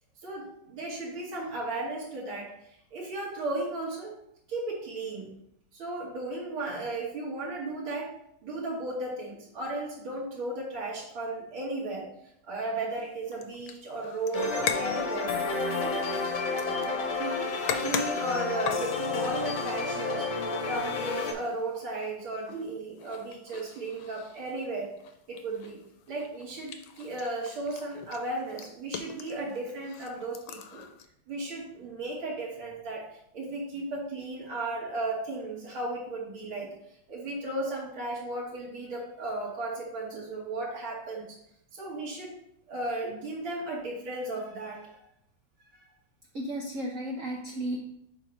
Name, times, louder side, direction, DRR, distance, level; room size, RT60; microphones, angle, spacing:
voice 1, 0.2-2.5 2.9-4.1 4.5-5.3 5.7-8.1 8.4-12.1 12.4-15.3 15.8-16.0 16.8-25.0 25.3-25.8 26.1-30.8 31.3-33.1 33.3-36.7 37.1-41.4 41.7-42.3 42.7-45.0 45.7-45.8, right 2 dB, 85° right, -5 dB, 2.2 m, -35 dB
sound 1, 12.9-31.1, left 8 dB, 80° left, 1.4 m, -41 dB
sound 2, 14.3-21.3, left 4 dB, 65° left, 1.3 m, -31 dB
voice 2, 46.3-47.8, right 1 dB, 70° right, 0 dB, 0.7 m, -33 dB
4.6 x 4.5 x 5.0 m, 0.75 s
omnidirectional pair, 2.2 m